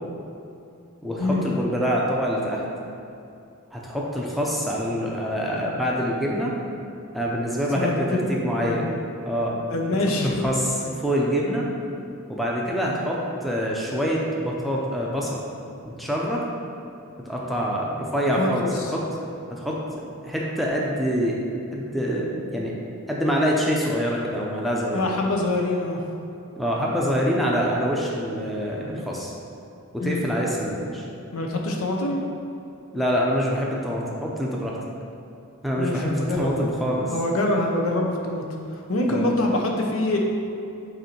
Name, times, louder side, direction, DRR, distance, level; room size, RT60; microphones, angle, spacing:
voice 1, 1.0-2.6 3.7-6.5 7.1-8.9 9.2-9.6 10.2-10.7 11.0-11.7 12.3-15.4 15.8-16.4 17.3-19.0 19.5-21.4 21.7-22.7 23.1-25.1 26.6-29.3 29.9-31.1 32.9-34.8 35.6-37.1 39.1-39.4, equal, ahead, -4 dB, 0.6 m, -25 dB
voice 2, 7.8-8.8 9.7-10.4 18.4-18.9 24.9-26.0 30.0-30.2 31.3-32.2 35.8-36.5 37.1-38.4 38.8-40.2, left 2 dB, 75° left, 0 dB, 0.8 m, -25 dB
8.0 x 2.7 x 4.4 m, 2.7 s
head